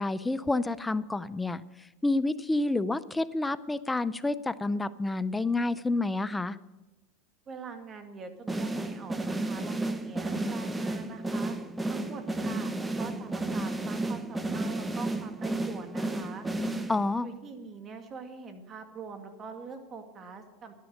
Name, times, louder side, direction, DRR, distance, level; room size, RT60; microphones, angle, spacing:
voice 1, 0.0-1.6 2.0-6.6 16.9-17.3, left 2 dB, 10° left, 16 dB, 0.5 m, -29 dB
voice 2, 7.5-11.6 11.9-16.5 17.2-20.7, right 5 dB, 30° right, 7 dB, 1.9 m, -44 dB
sound 1, 8.5-17.3, right 2 dB, 10° right, 0.9 m, -32 dB
11.5 x 10.5 x 6.4 m, 1.1 s
supercardioid pair, 110°, 0 cm